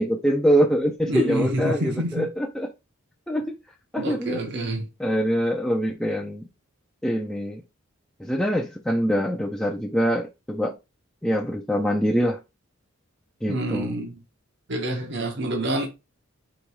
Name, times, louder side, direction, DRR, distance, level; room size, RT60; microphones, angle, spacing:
voice 1, 0.0-2.7 3.3-3.6 3.9-4.7 5.0-6.5 7.0-7.6 8.2-10.8 11.2-12.4 13.4-13.9, equal, 5° left, 0.5 m, -24 dB
voice 2, 1.1-2.3 4.0-4.9 13.5-14.2 14.7-15.9, right 1 dB, 55° right, 0.9 m, -27 dB
3.2 x 3.1 x 4.7 m
head